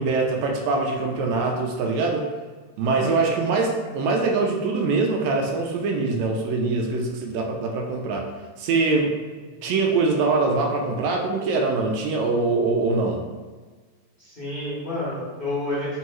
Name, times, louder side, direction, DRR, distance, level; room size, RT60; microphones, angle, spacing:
voice 1, 0.0-2.3 2.8-8.3 8.6-9.2 9.6-13.2, right 3 dB, 80° right, 1 dB, 1.8 m, -23 dB
voice 2, 2.9-3.4 9.5-9.6 14.2-16.0, left 1 dB, 35° left, -12 dB, 0.9 m, -30 dB
4.5 x 3.0 x 2.9 m, 1.4 s
omnidirectional pair, 3.3 m